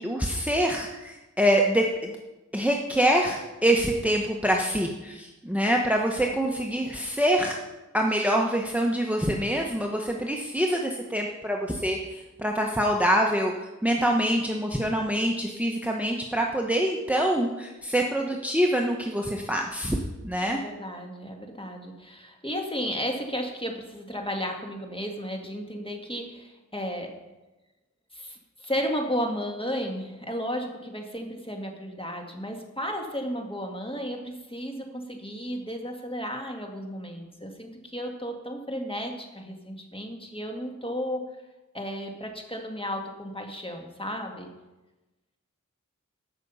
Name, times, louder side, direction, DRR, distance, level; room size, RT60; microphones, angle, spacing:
voice 1, 0.0-2.1 2.5-7.5 7.9-20.0 20.2-20.6, equal, 5° right, 1 dB, 1.1 m, -25 dB
voice 2, 20.5-27.1 28.1-41.2 41.7-44.5, equal, 15° left, 2 dB, 1.9 m, -33 dB
15.0 x 6.2 x 5.6 m, 1.1 s
wide cardioid pair, 40°, 31 cm